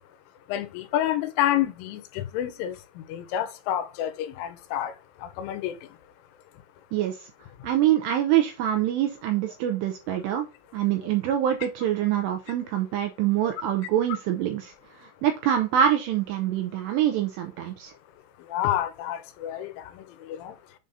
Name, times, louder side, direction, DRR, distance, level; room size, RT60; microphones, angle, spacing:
voice 1, 0.5-4.9 5.2-5.8 13.4-13.5 18.4-20.6, left 12 dB, 85° left, 3.3 m, -29 dB
voice 2, 7.6-10.5 10.7-14.7 15.2-17.9, right 11 dB, 85° right, 2.5 m, -25 dB
7.5 x 2.7 x 5.4 m
omnidirectional pair, 5.6 m